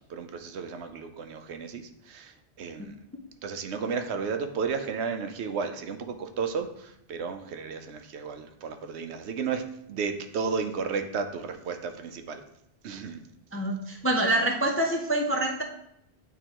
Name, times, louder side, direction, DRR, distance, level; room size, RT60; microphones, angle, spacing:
voice 1, 0.1-3.0 3.4-12.4 12.8-13.2, right 5 dB, 80° right, 7 dB, 0.9 m, -33 dB
voice 2, 13.5-15.6, right 1 dB, 20° left, 1 dB, 0.3 m, -26 dB
9.1 x 3.7 x 2.9 m, 0.76 s
omnidirectional pair, 1.1 m